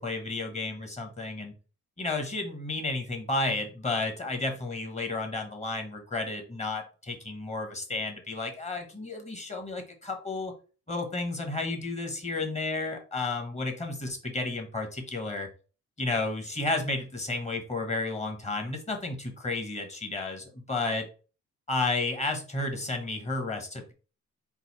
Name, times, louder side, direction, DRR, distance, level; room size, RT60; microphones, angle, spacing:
voice 1, 0.0-1.5 2.0-10.5 10.9-15.5 16.0-21.1 21.7-23.9, left 3 dB, 20° left, 4 dB, 1.3 m, -32 dB
4.0 x 2.6 x 4.2 m, 0.35 s
cardioid pair, 90°, 30 cm